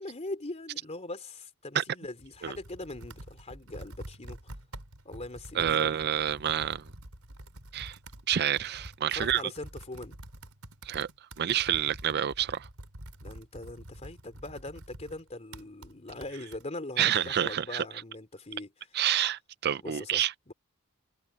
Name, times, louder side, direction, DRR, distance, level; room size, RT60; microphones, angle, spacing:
voice 1, 0.0-4.5 5.0-5.9 9.1-10.1 13.2-18.7 19.8-20.5, left 2 dB, 30° left, 3.2 m, -41 dB
Computer keyboard, 2.0-16.6, right 1 dB, 80° right, 4.3 m, -47 dB
voice 2, 5.5-6.8 7.7-8.0 8.3-9.4 10.8-11.1 11.4-12.7 17.0-17.8 18.9-20.3, right 10 dB, 50° right, 0.5 m, -28 dB
head